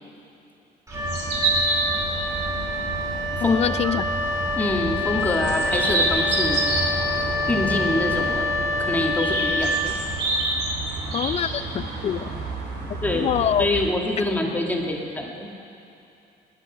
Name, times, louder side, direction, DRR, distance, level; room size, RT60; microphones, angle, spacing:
Wind instrument woodwind instrument, 0.9-10.3, left 2 dB, 20° right, 3.0 m, -27 dB
sound 1, 0.9-13.9, right 3 dB, 75° right, 2.5 m, -28 dB
voice 1, 3.4-4.1 11.1-12.3 13.1-13.7, left 9 dB, 40° left, 15 dB, 0.4 m, -24 dB
voice 2, 4.6-6.6 7.5-8.5 8.8-9.9 13.0-13.3 13.6-15.5, left 1 dB, 10° left, 0 dB, 1.8 m, -25 dB
18.5 x 10.5 x 5.6 m, 2.7 s
cardioid pair, 110°, 17 cm